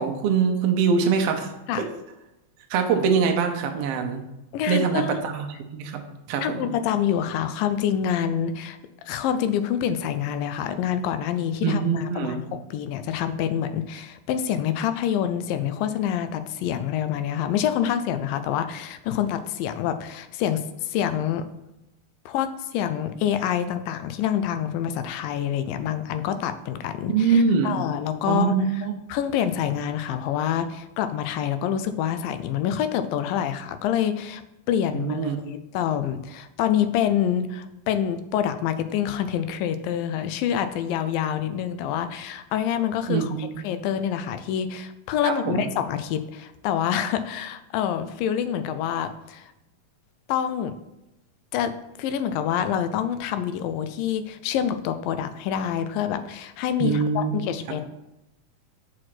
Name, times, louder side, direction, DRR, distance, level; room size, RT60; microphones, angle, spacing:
voice 1, 0.0-1.9 2.7-4.2 4.7-6.0 6.3-6.7 11.6-12.4 27.1-27.9 28.3-28.9 34.9-35.4 43.1-43.6 45.2-45.7 56.8-57.8, right 6 dB, 85° right, 4 dB, 1.3 m, -24 dB
voice 2, 4.5-5.2 6.4-8.8 9.1-21.5 22.3-28.6 29.1-34.4 34.7-43.3 43.6-49.5 50.3-50.7 51.5-57.8, left 9 dB, 85° left, 10 dB, 2.3 m, -26 dB
6.2 x 4.9 x 6.0 m, 0.92 s
omnidirectional pair, 3.9 m